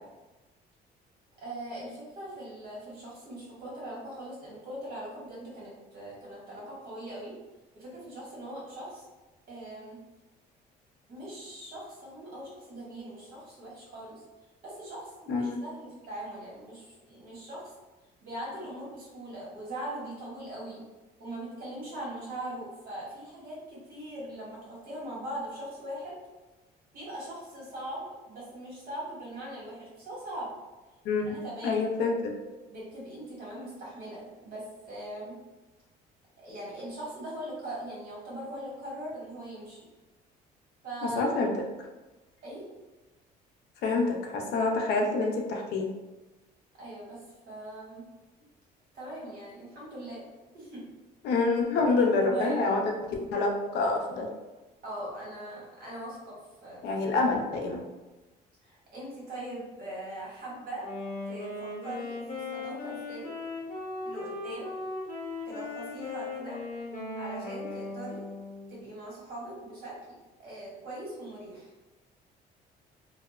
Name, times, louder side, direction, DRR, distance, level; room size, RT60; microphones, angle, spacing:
voice 1, 1.4-7.3 7.7-9.1 9.5-10.0 11.1-14.2 14.6-17.7 18.2-20.8 21.2-26.2 26.9-30.5 31.2-31.8 32.7-35.4 36.4-39.9 40.8-41.2 42.4-42.7 46.8-48.1 48.9-50.2 50.5-50.8 51.9-52.7 54.8-56.9 58.6-60.9 61.2-63.3 64.0-64.7 65.4-66.6 67.2-68.3 68.7-71.7, right 1 dB, 60° right, -5 dB, 1.3 m, -41 dB
voice 2, 15.3-15.6 31.0-31.4 31.6-32.3 41.2-41.5 43.8-45.9 51.2-52.8 53.3-54.3 56.8-57.8, left 3 dB, 75° left, 2 dB, 0.5 m, -27 dB
Wind instrument woodwind instrument, 60.8-68.8, left 2 dB, 50° left, 0.8 m, -38 dB
2.7 x 2.0 x 2.3 m, 1.2 s
cardioid pair, 110°, 17 cm